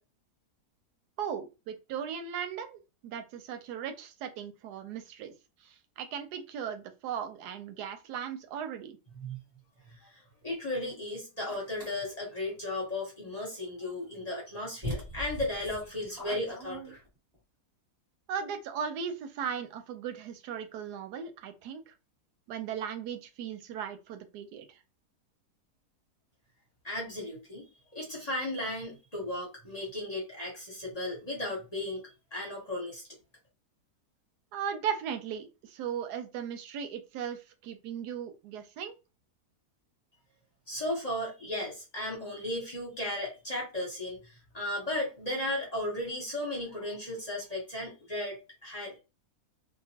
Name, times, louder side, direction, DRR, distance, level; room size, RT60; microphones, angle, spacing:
voice 1, 1.2-5.3 5.6-9.0 18.3-21.9 22.5-24.8 34.5-38.9, right 8 dB, 90° right, 1.2 m, -37 dB
voice 2, 10.4-16.8 26.8-27.7 27.9-32.0 32.3-33.0 40.7-44.2 44.5-48.9, left 1 dB, 30° left, 0.9 m, -35 dB
sound 1, 11.5-11.9 14.1-14.2 14.8-17.4, equal, 25° right, 1.3 m, -40 dB
2.9 x 2.2 x 2.7 m
omnidirectional pair, 1.7 m